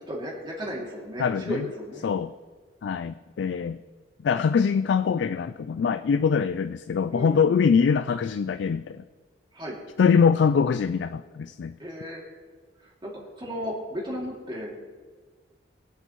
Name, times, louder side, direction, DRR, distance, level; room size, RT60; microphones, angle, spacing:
voice 1, 0.1-2.0 7.1-7.4 9.5-9.8 11.8-12.2 13.0-13.1 13.4-14.8, equal, 25° right, -3 dB, 2.5 m, -34 dB
voice 2, 1.2-1.7 2.0-2.3 2.8-3.8 4.2-9.0 10.0-11.8, left 6 dB, 70° left, 13 dB, 0.3 m, -23 dB
23.0 x 8.2 x 3.0 m, 1.5 s
head